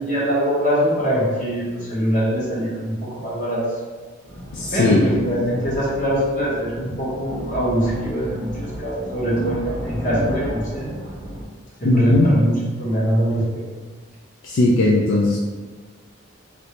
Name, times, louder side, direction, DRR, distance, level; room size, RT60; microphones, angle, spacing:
voice 1, 0.0-3.6 4.7-10.9 11.8-13.6, equal, 40° left, -7 dB, 1.0 m, -23 dB
sound 1, 4.3-11.4, equal, 55° right, 0.6 m, -33 dB
voice 2, 4.5-5.0 11.8-12.3 14.4-15.4, left 2 dB, 70° left, -3 dB, 0.4 m, -17 dB
3.2 x 2.6 x 2.9 m, 1.4 s
head